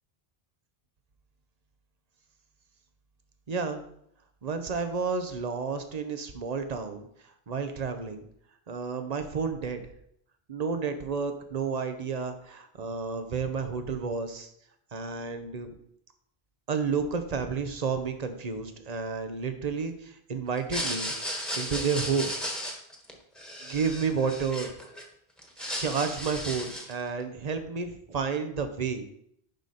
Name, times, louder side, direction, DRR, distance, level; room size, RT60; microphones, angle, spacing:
voice 1, 3.5-3.8 4.4-8.2 8.7-9.8 10.5-14.5 14.9-15.7 16.7-21.1 21.6-22.3 23.6-24.7 25.8-29.1, right 5 dB, 40° right, 8 dB, 0.9 m, -31 dB
sound 1, 20.6-25.0 25.4-27.0, equal, ahead, 1.4 m, -35 dB
10.5 x 4.9 x 4.2 m, 0.71 s
omnidirectional pair, 1.0 m